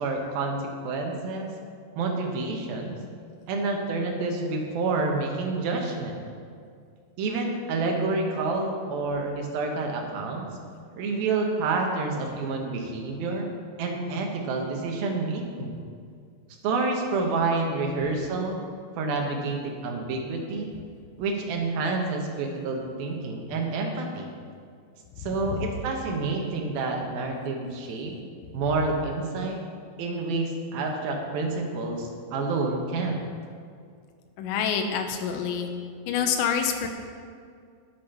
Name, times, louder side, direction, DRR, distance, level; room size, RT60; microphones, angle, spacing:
voice 1, 0.0-1.5 2.0-3.0 3.5-6.2 7.2-10.5 11.0-13.5 13.8-15.8 16.6-18.6 19.0-20.7 21.2-24.3 25.2-28.2 28.5-29.6 30.0-33.2, right 3 dB, 65° right, 1 dB, 2.7 m, -28 dB
voice 2, 34.4-35.7 36.1-36.9, left 7 dB, 90° left, 4 dB, 3.1 m, -26 dB
11.0 x 8.4 x 5.8 m, 2.2 s
omnidirectional pair, 5.0 m